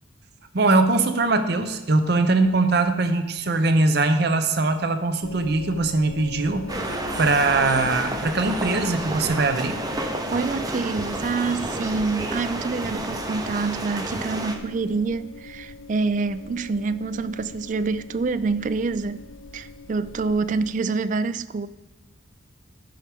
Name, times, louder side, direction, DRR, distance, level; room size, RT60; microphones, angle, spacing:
voice 1, 0.5-6.7 7.2-9.8, right 3 dB, 55° right, 0.7 m, -21 dB
sound 1, 5.2-20.7, left 3 dB, 85° left, 0.6 m, -41 dB
sound 2, 6.7-14.6, right 1 dB, 20° right, 0.7 m, -30 dB
voice 2, 10.3-19.3 19.5-21.7, right 4 dB, 40° right, 0.3 m, -26 dB
14.0 x 6.0 x 3.5 m
head